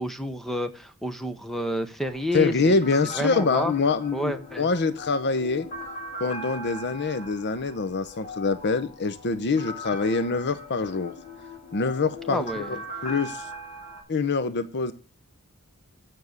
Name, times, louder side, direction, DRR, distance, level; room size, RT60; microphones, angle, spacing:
voice 1, 0.0-2.8 3.1-3.7 4.1-4.7 12.3-12.8, equal, ahead, 9 dB, 0.8 m, -29 dB
sound 1, 2.0-14.0, left 1 dB, 30° left, 4.9 m, -40 dB
voice 2, 2.3-5.7 6.2-11.1 11.7-13.5 14.1-14.9, left 4 dB, 50° left, 13 dB, 0.7 m, -25 dB
9.5 x 6.2 x 6.5 m, 0.38 s
head